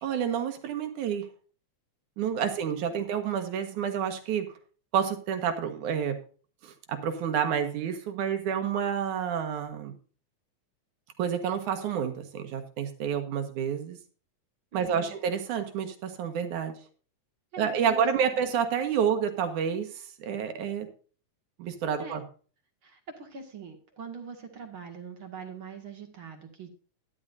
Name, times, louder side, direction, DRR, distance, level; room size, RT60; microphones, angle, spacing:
voice 1, 0.0-1.2 2.2-4.5 4.9-6.2 6.6-9.9 11.2-14.0 14.7-16.8 17.6-20.9 21.6-22.2, right 8 dB, 85° right, 7 dB, 2.9 m, -29 dB
voice 2, 14.7-15.2 17.5-18.4 22.0-22.2 22.8-26.7, right 5 dB, 45° right, 4 dB, 2.5 m, -43 dB
12.5 x 11.5 x 2.6 m, 0.39 s
omnidirectional pair, 3.4 m